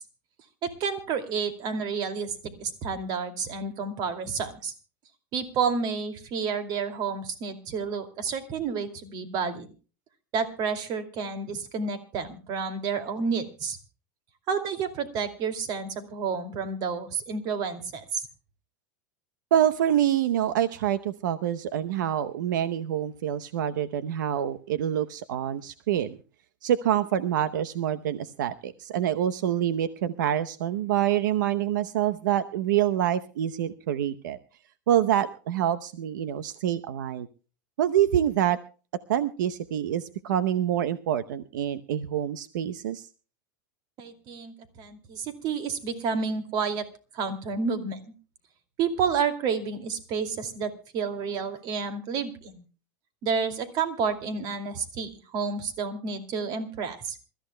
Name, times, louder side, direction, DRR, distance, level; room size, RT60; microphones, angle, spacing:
voice 1, 0.6-4.7 5.3-9.7 10.3-13.8 14.5-18.2 44.0-46.9 47.1-48.0 48.8-52.6 53.2-57.2, right 5 dB, 45° right, 8 dB, 2.5 m, -30 dB
voice 2, 19.5-26.2 26.6-34.4 34.9-37.3 37.8-38.6 39.1-43.1, right 10 dB, 85° right, 12 dB, 0.8 m, -26 dB
27.0 x 14.0 x 2.2 m, 0.36 s
supercardioid pair, 135°, 10 cm